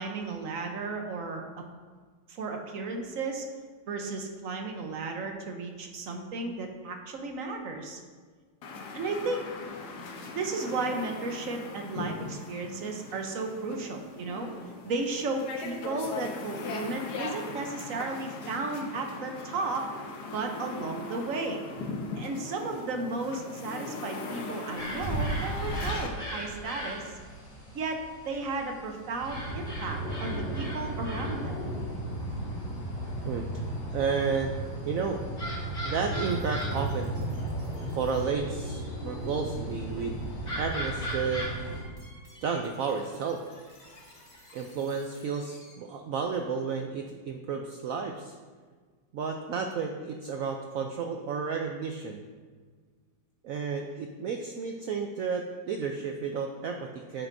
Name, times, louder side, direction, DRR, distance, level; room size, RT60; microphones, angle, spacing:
voice 1, 0.0-1.6 2.3-3.4 3.9-8.0 8.9-9.5 10.2-14.5 14.8-19.9 20.3-21.6 22.1-27.1 27.7-28.0 28.2-31.6, right 3 dB, 60° right, 3 dB, 1.0 m, -34 dB
sound 1, 8.6-26.1, left 3 dB, 65° left, 1.3 m, -40 dB
sound 2, 24.8-41.8, right 1 dB, 25° left, 2.5 m, -34 dB
voice 2, 33.2-33.7 33.9-34.5 34.9-35.2 35.8-37.3 37.9-40.2 40.6-41.5 42.4-43.4 44.5-48.3 49.1-52.2 53.4-57.3, right 5 dB, 80° right, 4 dB, 0.7 m, -32 dB
sound 3, 36.2-45.7, left 1 dB, 45° left, 2.0 m, -56 dB
8.9 x 7.8 x 2.6 m, 1.5 s
omnidirectional pair, 2.0 m